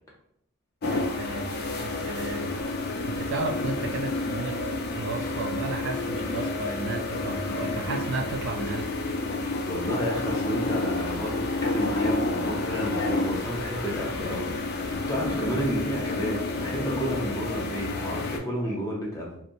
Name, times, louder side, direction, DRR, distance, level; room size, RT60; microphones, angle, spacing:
sound 1, 0.8-18.4, left 2 dB, 50° left, 0.4 m, -30 dB
voice 1, 0.8-1.5 1.8-2.5 3.1-4.6 4.9-8.9, right 3 dB, 60° right, 5 dB, 0.4 m, -33 dB
voice 2, 9.4-14.5 14.8-19.4, equal, 15° left, -3 dB, 0.6 m, -31 dB
2.8 x 2.0 x 2.5 m, 0.67 s
head